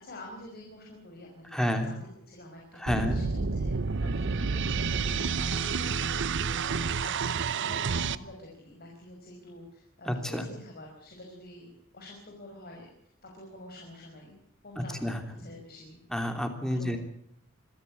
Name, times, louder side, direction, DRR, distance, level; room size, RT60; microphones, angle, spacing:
voice 1, 0.0-3.7 4.0-12.9 13.2-16.0 16.7-17.0, left 1 dB, 45° left, -1 dB, 5.6 m, -47 dB
voice 2, 1.5-1.9 2.8-3.2 10.1-10.4 15.0-15.2 16.1-17.0, equal, 5° left, 6 dB, 3.1 m, -29 dB
sound 1, 2.9-8.1, right 5 dB, 60° right, 0.8 m, -29 dB
26.5 x 14.0 x 8.6 m, 0.67 s
head